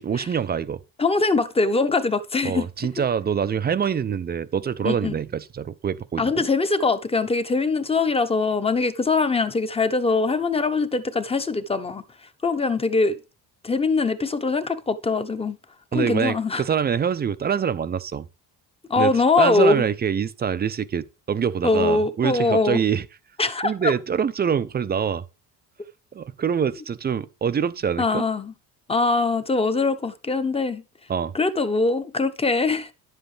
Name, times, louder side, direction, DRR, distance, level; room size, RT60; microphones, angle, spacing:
voice 1, 0.0-0.8 2.4-6.4 15.9-18.3 19.0-19.1 19.4-23.0 23.6-25.2 26.1-28.2 31.1-31.3, right 7 dB, 25° right, 0.5 m, -25 dB
voice 2, 1.0-2.7 4.8-5.2 6.2-12.0 12.4-13.2 13.6-15.6 15.9-16.6 18.9-19.8 21.6-22.8 23.4-23.9 28.0-28.5 28.9-30.8 31.3-32.9, left 3 dB, 15° left, 0.9 m, -22 dB
10.5 x 7.8 x 3.4 m
cardioid pair, 125°, 40 cm